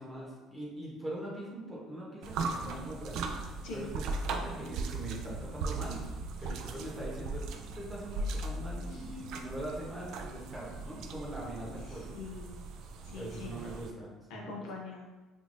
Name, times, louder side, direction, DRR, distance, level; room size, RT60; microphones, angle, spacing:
voice 1, 0.0-3.3 3.7-6.1 6.4-12.1 13.1-14.6, right 1 dB, 20° right, -4 dB, 1.0 m, -42 dB
sound 1, 2.2-13.9, right 3 dB, 70° right, 0.3 m, -38 dB
voice 2, 6.5-6.9 8.9-9.0 11.9-12.7 13.0-13.6 14.3-15.1, left 4 dB, 80° left, -2 dB, 0.6 m, -44 dB
3.4 x 2.7 x 2.6 m, 1.2 s
cardioid pair, 105°, 0 cm